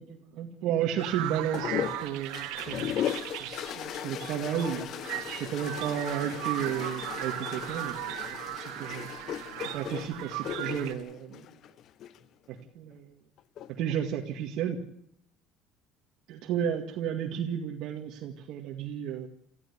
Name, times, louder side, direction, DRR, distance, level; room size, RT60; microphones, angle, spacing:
voice 1, 0.0-3.1 3.4-8.3 8.5-9.1 9.6-11.5 12.5-13.2 13.7-14.8 16.3-19.3, right 9 dB, 55° right, 2 dB, 2.0 m, -33 dB
sound 1, 1.0-10.9, right 15 dB, 85° right, 1.9 m, -38 dB
sound 2, 1.5-12.2 13.4-14.0, left 10 dB, 45° left, 0.9 m, -37 dB
28.0 x 15.0 x 8.3 m, 0.74 s
cardioid pair, 160°, 0 cm